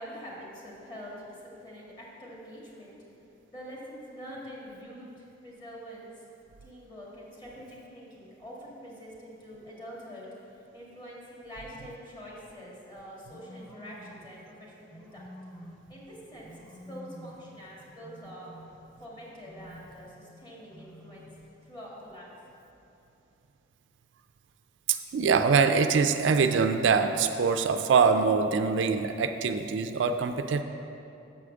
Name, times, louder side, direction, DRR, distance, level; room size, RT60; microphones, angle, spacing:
voice 1, 0.0-2.9 3.5-6.1 6.6-15.2 15.9-18.5 19.0-21.3 21.6-22.3, equal, 25° left, -5 dB, 1.8 m, -45 dB
sound 1, 13.3-14.4 14.9-15.9 16.4-17.5 18.0-19.0 19.4-20.1 20.7-21.5, equal, 5° left, 0.6 m, -49 dB
voice 2, 24.9-30.6, right 5 dB, 70° right, 8 dB, 0.4 m, -24 dB
6.9 x 4.9 x 6.8 m, 2.8 s
head